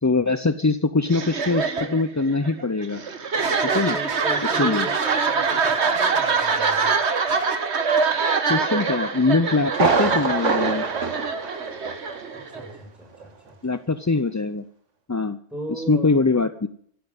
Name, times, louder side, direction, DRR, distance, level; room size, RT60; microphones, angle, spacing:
voice 1, 0.0-3.0 3.7-4.0 4.6-4.9 8.5-10.8 13.6-14.6 15.1-15.4 15.9-16.7, left 3 dB, 25° left, 11 dB, 0.4 m, -22 dB
sound 1, 1.1-12.8, right 5 dB, 65° right, 1.7 m, -24 dB
voice 2, 3.9-7.0 12.3-13.7 15.5-16.1, right 1 dB, ahead, 1 dB, 6.7 m, -37 dB
Thunder, 9.7-12.3 12.6-12.7 13.2-13.3, right 4 dB, 85° right, 2.0 m, -25 dB
15.5 x 9.2 x 9.7 m, 0.63 s
omnidirectional pair, 1.2 m